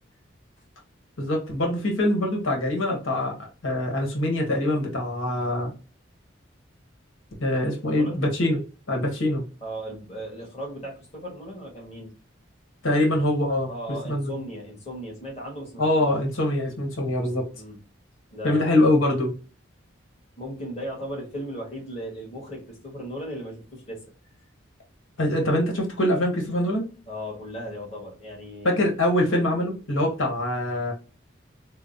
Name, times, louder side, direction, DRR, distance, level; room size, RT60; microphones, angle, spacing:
voice 1, 1.2-3.3 3.6-5.7 7.4-8.6 8.9-9.4 12.8-13.7 14.0-14.4 15.8-17.5 18.4-19.3 25.2-26.9 28.6-30.9, left 1 dB, 90° left, 1 dB, 1.2 m, -24 dB
voice 2, 7.8-8.2 9.6-12.1 13.7-16.1 17.5-17.8 18.3-18.7 20.4-24.0 27.1-28.8, equal, 30° left, -3 dB, 1.4 m, -36 dB
5.0 x 2.1 x 2.6 m, 0.34 s
head